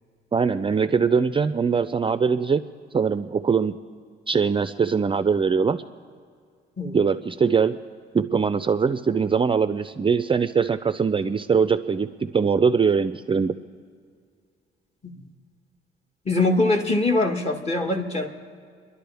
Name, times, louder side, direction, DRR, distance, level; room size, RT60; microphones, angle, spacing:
voice 1, 0.3-2.6 2.9-3.8 4.3-5.8 6.9-7.8 8.1-13.5, right 5 dB, 25° right, 11 dB, 0.4 m, -22 dB
voice 2, 16.2-18.3, left 2 dB, 30° left, 3 dB, 1.6 m, -23 dB
29.0 x 11.5 x 3.5 m, 2.1 s
cardioid pair, 90°, 20 cm